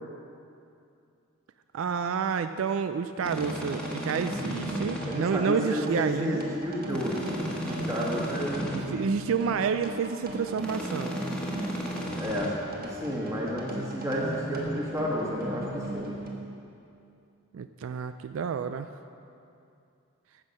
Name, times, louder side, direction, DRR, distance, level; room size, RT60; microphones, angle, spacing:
voice 1, 1.7-6.4 8.0-8.1 8.7-11.2 17.5-18.9, right 6 dB, 70° right, 10 dB, 0.3 m, -29 dB
sound 1, 3.2-5.1 6.9-8.8 10.6-12.5, equal, 5° left, 1.3 m, -35 dB
sound 2, 3.4-16.3, equal, 45° right, 1.4 m, -37 dB
voice 2, 5.1-9.0 12.2-12.5 12.8-16.1, equal, 15° right, -3 dB, 1.6 m, -31 dB
15.0 x 6.3 x 5.4 m, 2.6 s
head